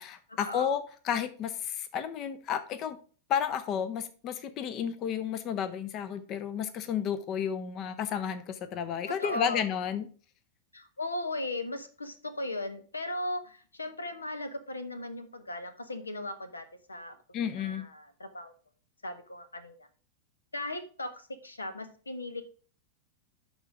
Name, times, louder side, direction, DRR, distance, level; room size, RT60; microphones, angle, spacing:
voice 1, 0.0-3.0 3.3-10.1 17.3-17.9, left 8 dB, 35° left, 13 dB, 0.7 m, -32 dB
voice 2, 9.1-9.6 10.7-17.2 17.5-18.5 19.0-19.9 20.5-22.4, left 1 dB, 80° left, 12 dB, 0.9 m, -37 dB
11.0 x 3.8 x 4.8 m, 0.40 s
figure-of-eight pair, 90°, 0 cm